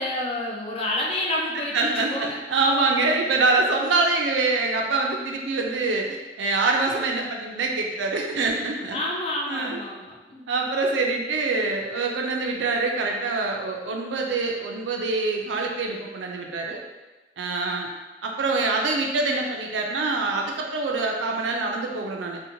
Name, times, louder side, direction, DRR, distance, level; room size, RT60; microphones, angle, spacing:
voice 1, 0.0-2.4 8.9-10.4, left 1 dB, 35° left, -1 dB, 0.4 m, -29 dB
voice 2, 1.7-9.0 9.5-9.8 10.5-16.8 17.4-17.9 18.2-22.4, right 3 dB, 90° right, 1 dB, 0.4 m, -25 dB
2.8 x 2.1 x 2.6 m, 1.1 s
head